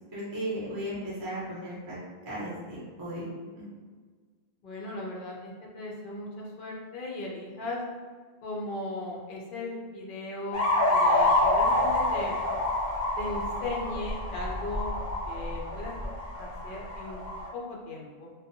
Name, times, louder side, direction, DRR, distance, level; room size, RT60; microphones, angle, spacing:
voice 1, 0.1-2.0 2.3-3.3 3.6-3.7, right 1 dB, 25° right, -8 dB, 0.6 m, -35 dB
voice 2, 4.6-7.8 8.4-12.4 13.2-14.9 15.3-16.0 16.4-17.2 17.5-18.3, left 2 dB, 60° left, -2 dB, 0.6 m, -37 dB
sound 1, 10.5-17.5, left 1 dB, 40° left, 1.1 m, -27 dB
2.5 x 2.2 x 2.6 m, 1.5 s
omnidirectional pair, 1.1 m